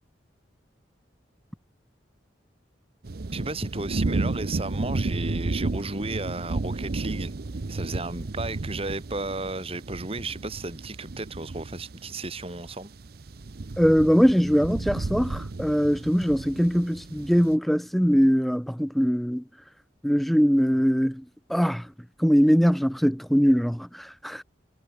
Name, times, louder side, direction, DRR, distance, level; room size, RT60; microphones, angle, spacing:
sound 1, 3.0-17.5, right 2 dB, 55° right, 0.7 m, -33 dB
voice 1, 3.3-7.3 7.7-12.9, right 2 dB, 30° right, 3.8 m, -34 dB
voice 2, 13.8-19.4 20.0-21.2 21.5-21.9 22.2-24.4, equal, ahead, 0.9 m, -22 dB
head